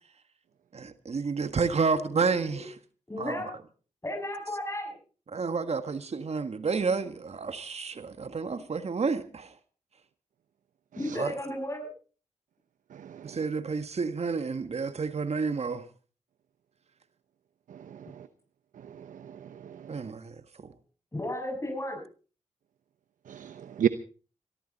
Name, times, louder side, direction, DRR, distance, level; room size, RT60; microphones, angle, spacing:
voice 1, 0.7-2.8 3.2-3.4 5.3-9.6 11.2-11.3 13.2-15.9 19.9-20.7, right 4 dB, 55° right, 1.6 m, -30 dB
voice 2, 3.1-3.5 4.0-5.0 11.0-11.9 21.1-22.0, left 1 dB, 20° left, 6.7 m, -34 dB
voice 3, 12.9-13.4 18.2-18.3 19.0-19.8 23.3-23.9, right 9 dB, 85° right, 0.9 m, -32 dB
22.0 x 14.0 x 4.1 m
cardioid pair, 50°, 13 cm